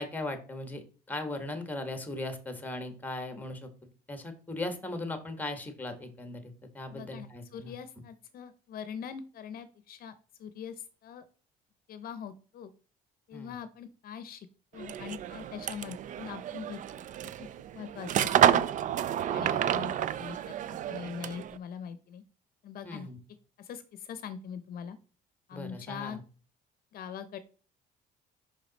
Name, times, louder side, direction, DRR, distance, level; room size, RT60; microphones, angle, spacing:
voice 1, 0.0-3.7 4.1-7.7 13.3-13.5 19.4-19.8 22.8-23.2 25.5-26.2, left 2 dB, 10° left, 7 dB, 1.3 m, -38 dB
voice 2, 6.9-10.1 10.4-11.3 11.9-12.7 13.3-14.5 14.7-17.5 17.7-18.7 19.3-20.6 20.9-22.2 22.6-23.1 23.6-25.0 25.5-26.2 26.9-27.4, left 7 dB, 60° left, 12 dB, 0.7 m, -42 dB
sound 1, 14.8-21.6, right 10 dB, 50° right, 0.4 m, -30 dB
5.5 x 5.1 x 4.0 m, 0.38 s
cardioid pair, 110°, 17 cm